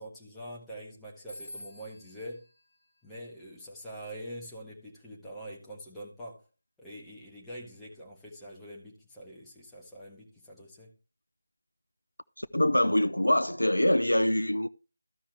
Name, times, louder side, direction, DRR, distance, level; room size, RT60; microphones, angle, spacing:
voice 1, 0.0-2.4 3.0-6.4 6.8-10.9, equal, 5° left, 1.6 m, -44 dB
Telephone, 1.3-3.8, left 1 dB, 40° left, 1.6 m, -50 dB
voice 2, 12.4-14.7, left 1 dB, 75° left, 0.5 m, -24 dB
14.0 x 5.6 x 3.3 m
figure-of-eight pair, 160°, 0 cm